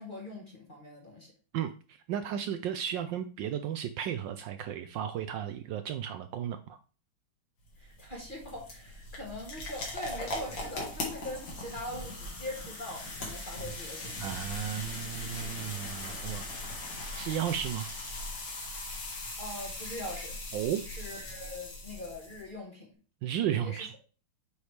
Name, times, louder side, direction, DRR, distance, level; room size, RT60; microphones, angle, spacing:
voice 1, 0.0-1.3 7.8-14.3 19.4-20.4 20.8-22.9 23.6-24.0, left 1 dB, 30° left, 0 dB, 1.2 m, -42 dB
voice 2, 2.1-6.8 14.2-16.4 17.1-17.9 20.5-20.8 23.2-23.9, right 10 dB, 75° right, 9 dB, 1.1 m, -34 dB
sound 1, 7.6-22.5, left 2 dB, 60° left, 2.5 m, -39 dB
8.1 x 4.8 x 3.3 m, 0.37 s
omnidirectional pair, 2.3 m